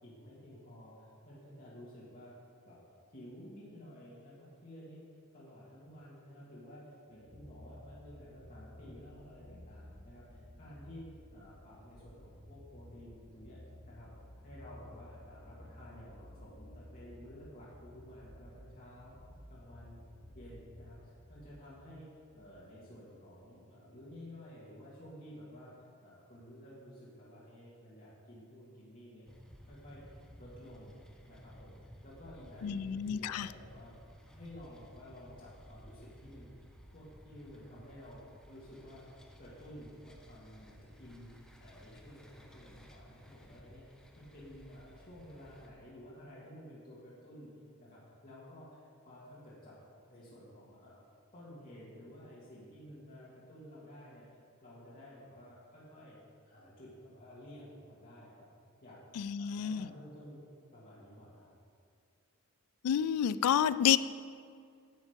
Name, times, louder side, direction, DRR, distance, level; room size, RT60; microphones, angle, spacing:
voice 1, 0.0-2.4 2.6-2.8 3.1-13.6 13.9-14.1 14.4-19.2 19.5-20.0 20.3-25.8 26.0-29.2 29.7-30.0 30.4-31.0 31.3-31.8 32.0-34.0 34.3-38.2 38.5-39.0 39.4-43.8 44.2-47.5 47.8-49.8 50.1-51.0 51.3-54.3 54.6-58.5 58.8-59.0 59.4-60.4 60.7-61.6, equal, 40° left, -8 dB, 2.1 m, -52 dB
sound 1, 7.1-22.7 23.5-23.6, left 1 dB, 15° right, 1.5 m, -54 dB
sound 2, 29.3-45.7, equal, 5° left, 0.7 m, -56 dB
voice 2, 32.6-33.5 59.2-59.9 62.8-64.0, left 9 dB, 85° left, 16 dB, 0.3 m, -29 dB
10.5 x 7.4 x 5.2 m, 2.2 s
head